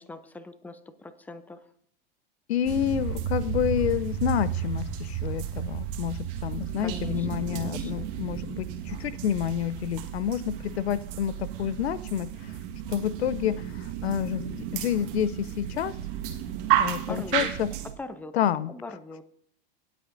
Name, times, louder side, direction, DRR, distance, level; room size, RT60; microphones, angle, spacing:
voice 1, 0.0-1.6 6.8-7.3 7.5-8.1 17.1-17.5 18.0-18.3 18.7-19.2, left 2 dB, 5° left, 12 dB, 0.7 m, -41 dB
voice 2, 2.5-12.3 12.9-15.9 16.8-17.7 18.3-18.7, left 10 dB, 85° left, 17 dB, 0.6 m, -29 dB
sound 1, 2.6-17.9, right 11 dB, 55° right, 1.6 m, -32 dB
18.0 x 8.4 x 2.6 m, 0.65 s
hypercardioid pair, 110°, 32 cm